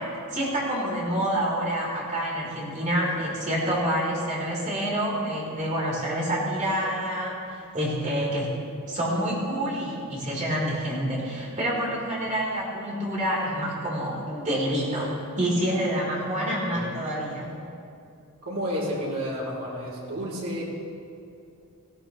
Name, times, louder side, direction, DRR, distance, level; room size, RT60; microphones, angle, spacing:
voice 1, 0.0-8.5 8.9-17.5, equal, 35° right, -4 dB, 4.2 m, -27 dB
voice 2, 16.7-17.0 18.4-20.6, equal, 75° right, -4 dB, 3.9 m, -31 dB
19.0 x 15.5 x 3.3 m, 2.6 s
head